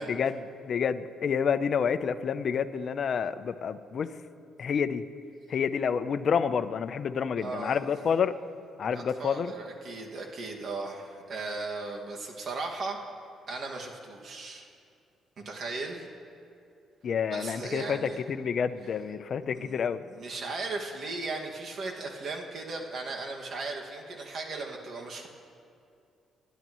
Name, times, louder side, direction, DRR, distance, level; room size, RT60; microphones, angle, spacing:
voice 1, 0.0-4.1 4.6-5.1 5.5-8.4 8.8-9.5 17.0-20.0, left 7 dB, 55° left, 11 dB, 0.6 m, -29 dB
voice 2, 7.4-7.8 8.9-13.0 13.5-14.7 15.4-16.1 17.3-18.2 19.5-19.8 20.1-25.3, right 3 dB, 55° right, 0 dB, 1.9 m, -37 dB
28.0 x 11.5 x 3.1 m, 2.5 s
cardioid pair, 90°, 0 cm